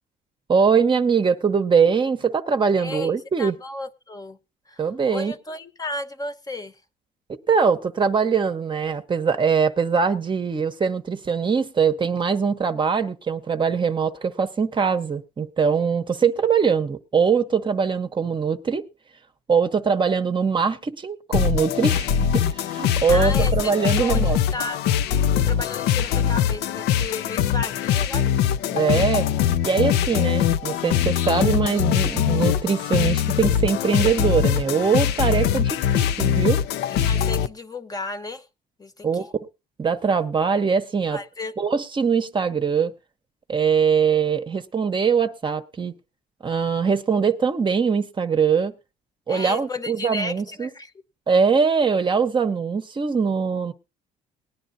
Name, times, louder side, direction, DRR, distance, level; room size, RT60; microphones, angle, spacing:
voice 1, 0.5-3.6 4.8-5.3 7.5-18.9 19.5-24.4 28.7-29.3 29.6-36.6 39.0-39.3 39.8-41.2 41.6-42.9 43.5-45.9 46.4-48.7 49.3-50.7 51.3-53.7, right 6 dB, 30° right, 0.8 m, -22 dB
voice 2, 2.8-3.1 3.4-4.4 4.7-6.8 23.1-24.8 25.4-28.4 36.9-38.4 38.8-39.3 41.1-41.5 49.3-50.9, left 2 dB, 20° left, 0.9 m, -33 dB
sound 1, 21.3-37.5, left 9 dB, 80° left, 0.5 m, -22 dB
19.0 x 10.0 x 2.6 m
cardioid pair, 110°, 17 cm